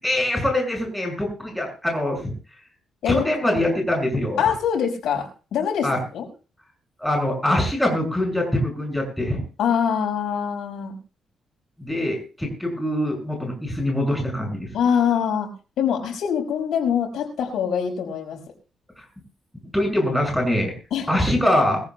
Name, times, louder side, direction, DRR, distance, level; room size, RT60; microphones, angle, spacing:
voice 1, 0.0-2.3 3.1-4.4 5.8-6.0 7.0-9.4 11.8-14.7 19.0-19.1 19.7-20.7 21.1-21.8, left 1 dB, 5° left, 1 dB, 6.3 m, -23 dB
voice 2, 4.4-6.3 9.6-10.9 14.7-15.5 15.8-18.4 20.9-21.1, left 8 dB, 80° left, 1 dB, 5.2 m, -24 dB
22.5 x 15.5 x 2.3 m, 0.34 s
cardioid pair, 130°, 0 cm